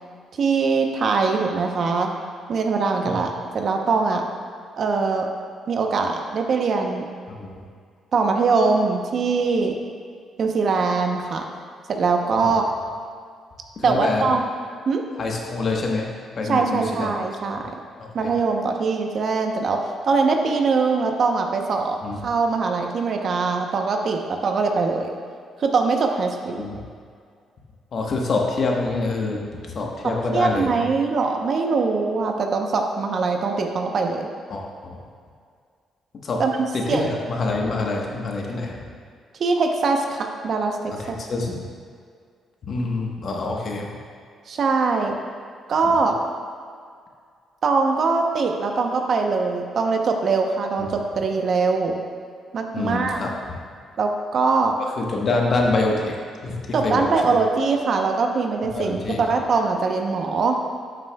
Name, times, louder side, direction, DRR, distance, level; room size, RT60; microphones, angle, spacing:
voice 1, 0.4-2.1 2.5-4.2 4.8-5.3 5.7-7.1 8.1-9.7 10.4-11.4 11.9-12.7 13.8-14.4 14.9-15.0 16.4-17.6 18.1-25.1 25.6-26.7 29.8-29.9 30.3-34.3 36.4-36.5 36.9-37.1 39.4-41.2 44.5-45.1 45.7-46.1 47.6-52.0 52.5-53.2 54.0-54.8 56.7-60.6, right 4 dB, 55° right, 3 dB, 0.8 m, -22 dB
voice 2, 13.8-14.2 15.2-17.1 18.0-18.3 22.0-22.2 26.6-26.8 27.9-29.5 29.7-30.9 34.5-35.0 36.2-36.4 36.7-38.8 41.0-41.6 42.6-43.9 45.8-45.9 50.8-50.9 52.7-53.3 55.0-56.1 56.4-57.4 58.7-59.4, left 3 dB, 50° left, 0 dB, 1.1 m, -26 dB
11.0 x 6.2 x 2.3 m, 2.1 s
cardioid pair, 90°, 0 cm